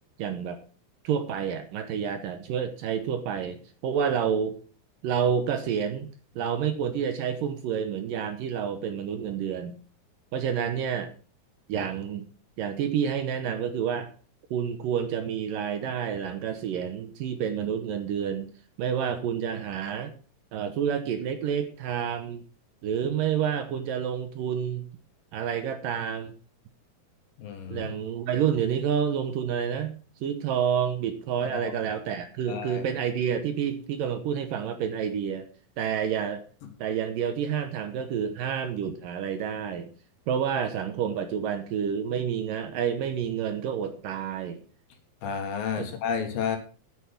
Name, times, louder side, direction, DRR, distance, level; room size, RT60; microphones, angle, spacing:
voice 1, 0.2-0.6 1.0-4.6 5.0-6.1 6.4-9.8 10.3-11.1 11.7-12.2 12.6-14.1 14.5-18.5 18.8-20.1 20.5-22.4 22.8-24.8 25.3-26.3 27.7-30.0 30.2-35.5 35.8-36.4 36.8-39.9 40.3-44.6 45.8-45.9, right 8 dB, 70° right, 8 dB, 2.4 m, -29 dB
voice 2, 27.4-27.8 31.6-31.7 32.5-32.8 45.2-46.6, left 7 dB, 65° left, 5 dB, 3.3 m, -31 dB
9.6 x 9.5 x 6.0 m, 0.39 s
omnidirectional pair, 4.6 m